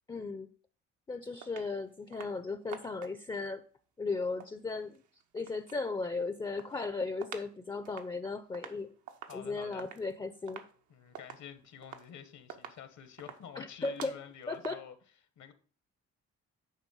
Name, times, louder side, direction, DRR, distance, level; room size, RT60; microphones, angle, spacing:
voice 1, 0.1-0.5 1.1-3.6 4.0-5.0 5.3-8.9 9.3-10.6 13.6-14.1 14.5-14.8, left 3 dB, 15° left, 0.5 m, -36 dB
sound 1, 1.4-1.7 2.1-2.4 2.7-3.3 4.2-5.8 6.2-7.5 7.8-14.7, right 8 dB, 80° right, 0.9 m, -49 dB
voice 2, 9.3-9.9 10.9-14.9 15.4-15.5, left 9 dB, 65° left, 1.0 m, -48 dB
9.1 x 3.3 x 5.4 m
cardioid pair, 90°, 30 cm